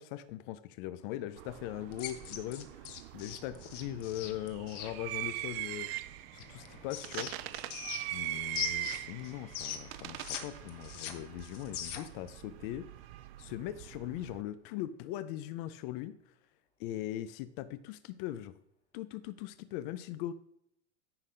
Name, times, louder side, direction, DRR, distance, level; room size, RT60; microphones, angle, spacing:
voice 1, 0.0-2.9 3.1-5.9 6.3-7.3 8.1-12.9 13.4-16.1 16.8-18.5 18.9-20.3, left 13 dB, 45° left, 13 dB, 0.5 m, -40 dB
sound 1, 1.0-14.7 15.0-15.1 15.5-16.1, left 2 dB, 20° left, 1.9 m, -61 dB
sound 2, 1.4-14.4, right 17 dB, 55° right, 0.5 m, -42 dB
sound 3, 1.9-4.9 6.4-8.2 8.5-10.4 10.7-12.2, left 9 dB, 80° left, 1.2 m, -40 dB
9.9 x 3.9 x 5.1 m, 0.75 s
supercardioid pair, 145°, 36 cm